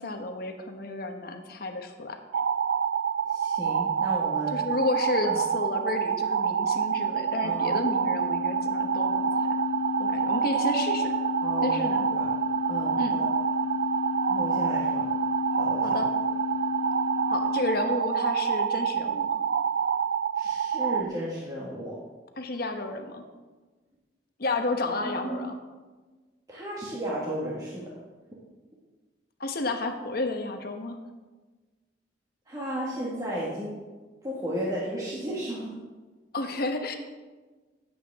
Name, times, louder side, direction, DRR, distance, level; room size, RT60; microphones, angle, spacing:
voice 1, 0.0-2.2 4.5-9.5 10.0-11.1 11.6-12.2 13.0-13.1 15.8-16.1 17.3-19.4 22.4-23.2 24.4-25.6 29.4-31.0 36.3-36.9, left 2 dB, 55° left, 5 dB, 1.1 m, -31 dB
sound 1, 2.3-21.0, right 7 dB, 75° right, 0.4 m, -27 dB
voice 2, 3.3-4.7 5.2-5.4 7.4-7.8 11.4-11.8 12.1-12.3 12.7-13.3 14.3-15.1 15.5-16.0 20.4-22.0 25.0-25.5 26.5-28.0 32.5-33.8 34.2-35.8, right 1 dB, 20° right, -5 dB, 1.8 m, -34 dB
sound 2, 6.5-17.7, left 8 dB, 30° left, 1.4 m, -33 dB
16.0 x 8.0 x 3.6 m, 1.3 s
head